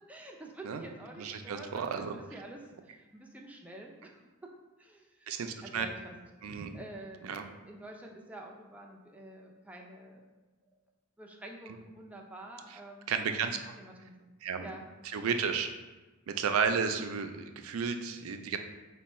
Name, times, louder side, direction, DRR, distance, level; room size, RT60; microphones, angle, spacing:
voice 1, 0.1-4.5 4.8-5.3 5.6-6.2 6.7-10.2 11.2-13.2 13.5-14.3 14.6-14.8, right 1 dB, 5° right, 0 dB, 0.4 m, -48 dB
voice 2, 1.2-2.1 5.3-5.9 6.4-6.8 7.2-7.4 13.1-13.6 14.4-14.7 15.1-15.7 16.3-18.6, right 6 dB, 80° right, 7 dB, 0.4 m, -32 dB
4.5 x 2.2 x 4.1 m, 1.2 s
head